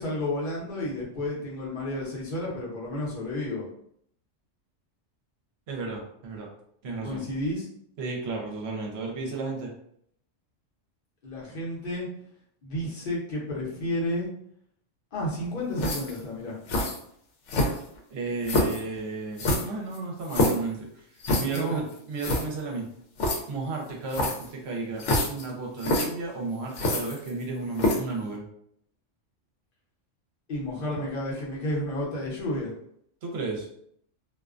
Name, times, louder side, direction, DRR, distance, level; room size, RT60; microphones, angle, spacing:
voice 1, 0.0-3.7 7.0-7.7 11.2-12.1 12.6-14.3 15.1-16.6 21.5-21.8 30.5-32.7, left 1 dB, 45° left, -4 dB, 0.8 m, -31 dB
voice 2, 5.7-6.5 6.8-7.3 8.0-9.7 18.1-20.9 21.4-22.9 23.5-28.5 33.2-33.7, right 3 dB, 65° right, -1 dB, 0.9 m, -33 dB
sound 1, 15.8-16.2 16.7-17.0 17.5-18.0 18.4-18.8 19.4-20.7 21.2-21.6 21.9-22.0 22.2-22.4 23.2-23.4 24.1-24.5 25.0-25.4 25.8-26.1 26.7-27.4 27.8-28.1, left 1 dB, 75° left, 0.9 m, -25 dB
2.4 x 2.2 x 2.4 m, 0.68 s
omnidirectional pair, 1.3 m